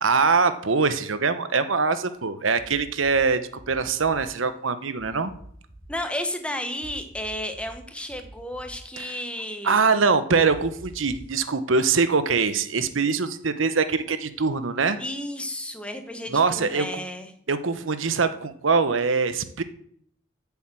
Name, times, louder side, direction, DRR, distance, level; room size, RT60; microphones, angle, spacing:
voice 1, 0.0-3.4 3.7-5.3 9.0-9.1 9.6-15.0 16.3-17.0 17.5-19.6, right 4 dB, 90° right, 12 dB, 1.0 m, -23 dB
sound 1, 2.6-3.2 3.6-4.2 5.0-5.9 6.8-7.8 8.1-8.8 10.5-11.3, right 1 dB, 55° right, 3.6 m, -45 dB
voice 2, 5.9-9.8 15.0-17.3, left 1 dB, 5° left, 6 dB, 1.1 m, -32 dB
9.2 x 7.2 x 7.7 m, 0.65 s
head